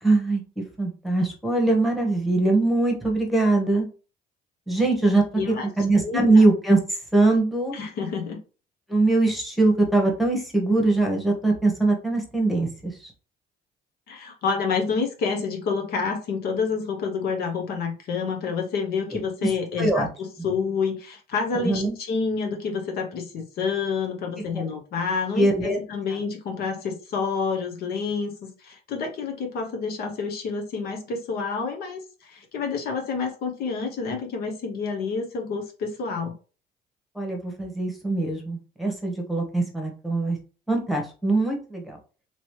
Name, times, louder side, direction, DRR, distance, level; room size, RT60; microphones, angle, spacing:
voice 1, 0.0-0.4 0.8-3.9 4.7-7.7 8.9-13.1 19.8-20.1 21.6-21.9 24.5-24.6 25.3-25.8 37.1-40.4 40.7-42.0, right 2 dB, ahead, 1 dB, 1.1 m, -22 dB
voice 2, 5.3-5.7 6.0-6.4 7.7-8.4 14.1-36.3, left 5 dB, 65° left, 3 dB, 0.9 m, -28 dB
3.0 x 3.0 x 3.1 m, 0.35 s
cardioid pair, 110°, 17 cm